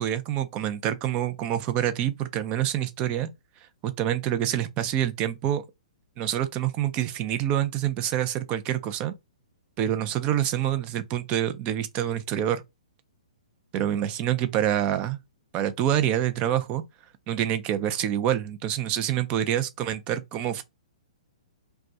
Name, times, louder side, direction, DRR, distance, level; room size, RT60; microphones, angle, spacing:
voice 1, 0.0-3.3 3.8-5.6 6.2-9.1 9.8-12.6 13.7-15.2 15.5-16.8 17.3-20.6, right 11 dB, 30° right, 0.4 m, -26 dB
2.2 x 2.1 x 2.6 m
hypercardioid pair, 125°, 4 cm